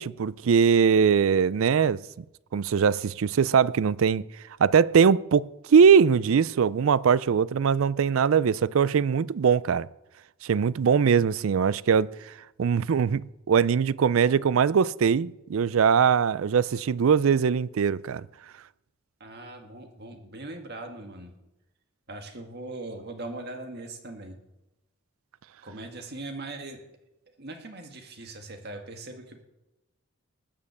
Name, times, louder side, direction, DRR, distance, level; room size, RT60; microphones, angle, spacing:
voice 1, 0.0-2.0 2.5-4.2 4.6-9.9 10.4-12.1 12.6-13.2 13.5-18.2, right 6 dB, 70° right, 0.4 m, -21 dB
voice 2, 19.2-21.3 22.1-24.4 25.6-26.8 27.4-29.4, right 2 dB, 50° right, 1.8 m, -40 dB
19.5 x 7.5 x 7.1 m
head